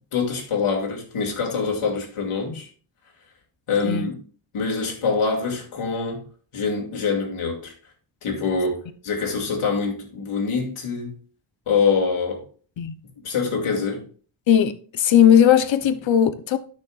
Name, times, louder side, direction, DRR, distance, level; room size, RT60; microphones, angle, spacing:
voice 1, 0.1-2.7 3.7-4.1 4.5-6.2 6.5-7.7 8.2-11.1 11.7-12.4 13.2-14.0, left 5 dB, 85° left, 2.6 m, -25 dB
voice 2, 14.5-16.6, left 9 dB, 65° left, 0.9 m, -17 dB
12.5 x 6.3 x 2.4 m
wide cardioid pair, 165°, 49 cm